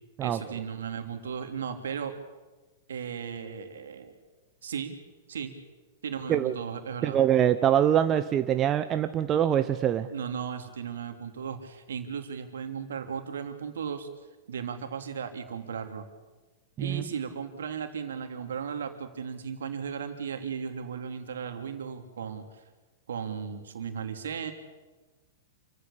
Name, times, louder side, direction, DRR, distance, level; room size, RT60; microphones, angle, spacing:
voice 1, 0.2-2.1 2.9-4.1 4.6-4.9 5.3-5.5 6.0-7.2 10.1-14.1 14.5-16.0 16.8-22.5 23.1-24.5, right 7 dB, 70° right, 6 dB, 3.2 m, -36 dB
voice 2, 7.0-10.1 16.8-17.0, right 10 dB, 30° right, 10 dB, 1.1 m, -24 dB
28.5 x 15.0 x 8.7 m, 1.2 s
hypercardioid pair, 110°, 0 cm